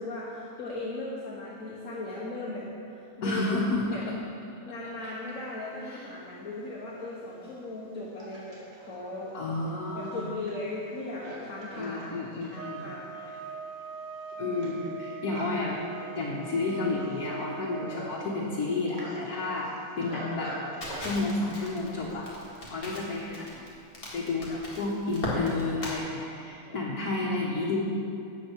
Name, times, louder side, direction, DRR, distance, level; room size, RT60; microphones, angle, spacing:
voice 1, 0.0-3.6 3.9-4.0 4.6-9.3 9.9-13.3 26.6-26.8, left 2 dB, 60° left, -6 dB, 1.8 m, -38 dB
voice 2, 3.2-4.1 5.8-6.1 9.3-10.3 11.8-12.9 14.4-15.8 16.2-19.7 20.0-20.5 21.0-22.3 22.7-23.5 24.1-27.8, left 3 dB, 80° left, -5 dB, 1.8 m, -31 dB
Livestock farm animals working animals, 6.2-6.3 7.0-23.0, equal, 45° right, 2.1 m, -45 dB
sound 1, 12.5-18.0, right 6 dB, 70° right, 0.9 m, -42 dB
Crackle, 20.8-26.0, left 1 dB, 40° left, 2.2 m, -38 dB
12.5 x 8.4 x 4.6 m, 2.5 s
omnidirectional pair, 1.6 m